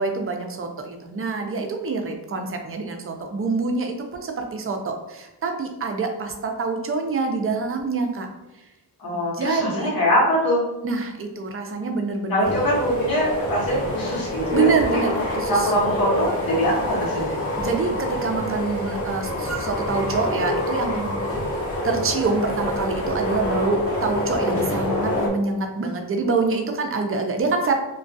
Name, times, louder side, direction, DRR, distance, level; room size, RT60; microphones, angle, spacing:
voice 1, 0.0-8.3 9.1-9.9 10.8-12.5 14.5-15.7 17.2-21.2 21.8-27.7, right 4 dB, 35° right, 4 dB, 0.4 m, -26 dB
voice 2, 9.0-10.6 12.3-14.7 15.5-17.4, equal, 60° left, -4 dB, 1.0 m, -23 dB
sound 1, 12.4-25.3, left 1 dB, 35° left, 0.7 m, -27 dB
2.3 x 2.2 x 2.5 m, 1.0 s
cardioid pair, 80°, 41 cm